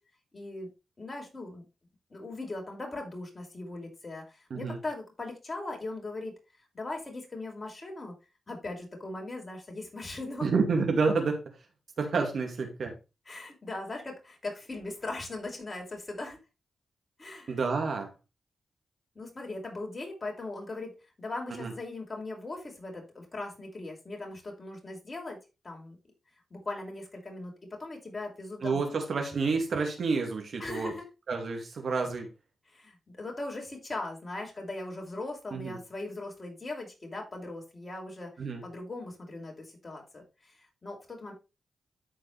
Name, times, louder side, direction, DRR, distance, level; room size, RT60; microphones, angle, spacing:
voice 1, 0.3-0.7 1.0-1.6 2.1-6.3 6.7-8.2 8.5-10.5 13.3-16.4 17.2-17.5 19.1-25.4 25.6-26.0 26.5-28.9 30.6-31.0 32.7-38.3 38.6-41.3, left 2 dB, 40° left, 0 dB, 5.2 m, -39 dB
voice 2, 10.4-11.4 12.0-13.0 17.5-18.1 21.5-21.7 28.6-30.9 31.3-32.3 35.5-35.8 38.4-38.6, right 4 dB, 65° right, 3 dB, 2.3 m, -29 dB
13.5 x 4.7 x 3.4 m, 0.28 s
supercardioid pair, 40°, 0 cm